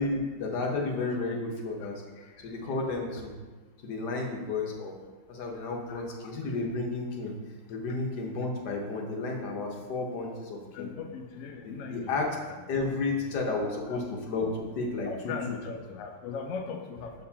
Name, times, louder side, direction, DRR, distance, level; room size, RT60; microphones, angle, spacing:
voice 1, 0.0-2.0 2.4-3.3 3.8-4.9 5.3-7.3 7.7-10.9 11.6-12.4 12.7-14.5 14.8-15.6, left 3 dB, 60° left, 0 dB, 1.5 m, -32 dB
voice 2, 5.9-6.3 10.7-12.1 13.7-14.0 15.1-17.1, left 5 dB, 85° left, 4 dB, 0.6 m, -38 dB
6.7 x 6.6 x 2.8 m, 1.3 s
omnidirectional pair, 2.1 m